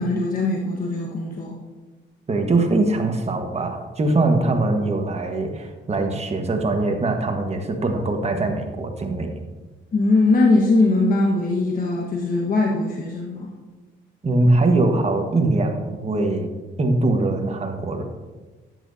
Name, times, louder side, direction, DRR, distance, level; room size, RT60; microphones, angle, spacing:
voice 1, 0.0-1.6 9.9-13.5, left 2 dB, 45° left, -2 dB, 1.4 m, -20 dB
voice 2, 2.3-9.4 14.2-16.5 16.8-18.0, right 2 dB, 30° right, 4 dB, 1.4 m, -22 dB
11.5 x 9.3 x 2.7 m, 1.3 s
cardioid pair, 90°, 20 cm